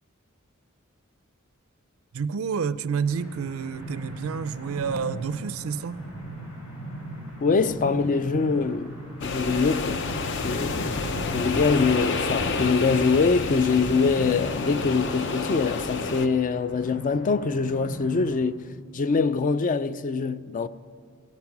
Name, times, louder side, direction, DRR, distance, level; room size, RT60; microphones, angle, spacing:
voice 1, 2.1-6.1, right 6 dB, 75° right, 0.5 m, -29 dB
sound 1, 3.0-18.3, equal, 80° left, 4.6 m, -40 dB
voice 2, 7.4-10.0 10.4-11.1 11.3-18.7 18.9-20.7, left 4 dB, 40° left, 0.4 m, -24 dB
sound 2, 9.2-16.3, left 3 dB, 60° left, 0.8 m, -29 dB
18.0 x 13.0 x 5.9 m
head